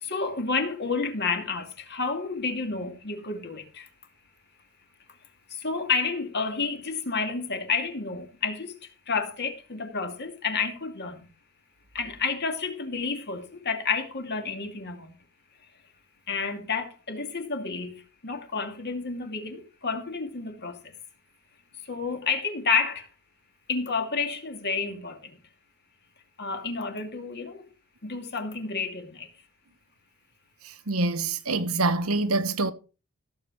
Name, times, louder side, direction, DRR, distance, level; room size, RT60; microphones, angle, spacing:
voice 1, 0.0-3.9 5.5-8.8 9.1-11.3 11.9-15.1 16.3-20.9 21.8-23.1 23.7-25.4 26.4-27.7 28.0-29.3, left 4 dB, 50° left, 2.4 m, -30 dB
voice 2, 30.6-32.7, right 3 dB, 80° right, 1.3 m, -26 dB
15.5 x 7.6 x 4.9 m
head